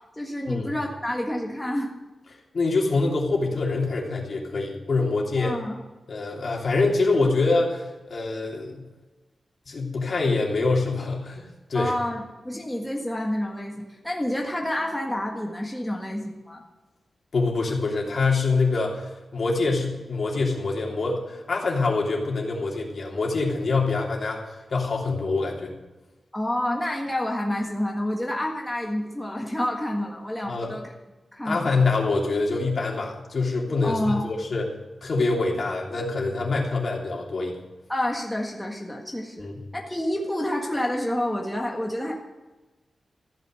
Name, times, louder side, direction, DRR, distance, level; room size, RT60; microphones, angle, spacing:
voice 1, 0.1-1.9 5.4-5.8 11.7-16.6 26.3-30.9 31.3-31.7 33.8-34.3 37.9-39.5 39.7-42.1, left 1 dB, 5° left, -1 dB, 1.7 m, -28 dB
voice 2, 2.5-5.6 6.1-8.8 9.7-11.4 11.7-11.9 17.3-25.8 30.5-30.7 31.4-34.7 35.0-37.6 39.4-39.6, left 3 dB, 55° left, -1 dB, 3.2 m, -25 dB
15.0 x 9.6 x 7.7 m, 1.1 s
wide cardioid pair, 150°, 0 cm